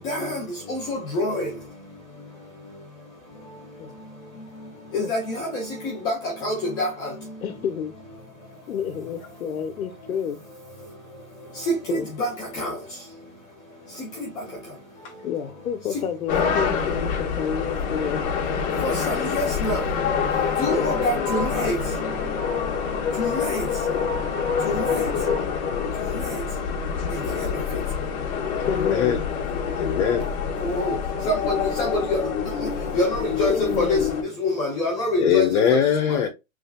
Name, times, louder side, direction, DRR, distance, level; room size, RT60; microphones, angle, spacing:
voice 1, 0.0-0.4 0.7-1.5 4.9-5.6 6.0-6.1 6.4-7.1 11.7-12.3 12.6-12.7 18.8-19.8 20.6-21.7 23.2-23.6 24.7-25.1 30.6-31.0 31.3-31.4 31.8-32.2 32.9-34.0 34.4-35.5, left 1 dB, 10° left, 0.4 m, -25 dB
voice 2, 7.4-7.9 8.7-10.4 11.9-12.1 15.2-18.2 20.7-21.0 28.7-29.2 33.5-34.1, left 8 dB, 80° left, 0.9 m, -29 dB
sound 1, 16.3-34.2, left 6 dB, 35° left, 1.5 m, -26 dB
voice 3, 28.6-30.4 35.2-36.3, left 8 dB, 55° left, 1.2 m, -23 dB
5.4 x 3.5 x 2.3 m
hypercardioid pair, 145°, 42 cm